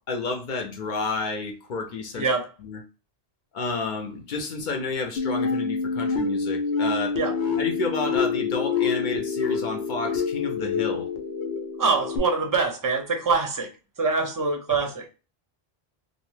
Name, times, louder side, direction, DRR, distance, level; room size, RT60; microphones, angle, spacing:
voice 1, 0.1-2.3 2.6-2.8 3.5-7.2 7.5-11.1, left 3 dB, 55° left, 0.6 m, -30 dB
voice 2, 2.2-2.5 7.2-7.3 11.8-13.7 14.0-15.1, right 4 dB, 25° right, 0.5 m, -24 dB
sound 1, 5.2-12.2, left 5 dB, 90° left, 0.9 m, -27 dB
2.7 x 2.1 x 3.0 m
omnidirectional pair, 1.1 m